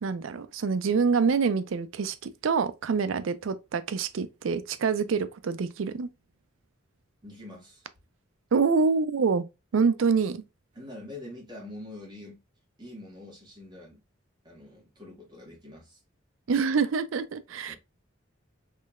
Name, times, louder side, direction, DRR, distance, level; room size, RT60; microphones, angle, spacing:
voice 1, 0.0-6.1 8.5-9.5 9.7-10.4 16.5-17.8, right 5 dB, 80° right, 0.4 m, -26 dB
voice 2, 7.2-7.9 10.7-12.4 12.8-14.0 14.4-16.0 17.7-17.8, left 1 dB, 20° right, 1.6 m, -45 dB
3.7 x 3.2 x 2.4 m
head